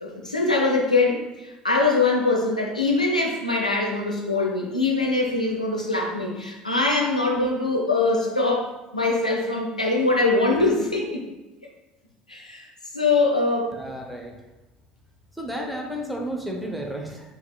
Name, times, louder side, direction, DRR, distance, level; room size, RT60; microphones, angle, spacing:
voice 1, 0.0-11.2 12.3-12.7 12.9-13.7, left 3 dB, 90° left, 0 dB, 0.6 m, -23 dB
voice 2, 13.7-14.3 15.4-17.3, equal, ahead, 0 dB, 0.7 m, -32 dB
4.4 x 3.8 x 2.2 m, 1.1 s
figure-of-eight pair, 65°, 4 cm